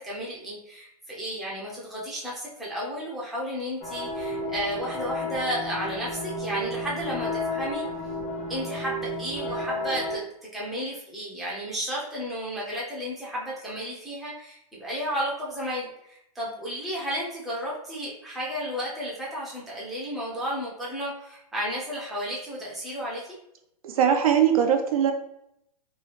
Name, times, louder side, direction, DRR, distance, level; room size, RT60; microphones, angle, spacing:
voice 1, 0.0-7.8 8.5-10.2 10.5-23.2, equal, ahead, -7 dB, 0.6 m, -33 dB
sound 1, 3.8-10.2, left 1 dB, 25° left, 0.9 m, -32 dB
voice 2, 23.8-25.1, right 8 dB, 60° right, 5 dB, 0.5 m, -21 dB
3.0 x 2.3 x 3.2 m, 0.78 s
hypercardioid pair, 150°, 20 cm